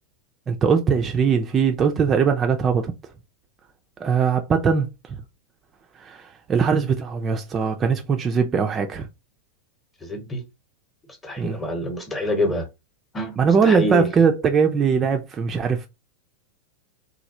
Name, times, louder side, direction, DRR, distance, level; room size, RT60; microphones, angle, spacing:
voice 1, 0.5-2.9 4.0-5.2 6.0-9.1 11.4-11.6 13.4-15.9, right 6 dB, 25° right, 0.4 m, -21 dB
voice 2, 10.0-10.4 11.2-12.7 13.1-13.4 13.6-14.1, left 1 dB, 15° left, 0.9 m, -26 dB
3.1 x 2.3 x 2.7 m
figure-of-eight pair, 90°, 0 cm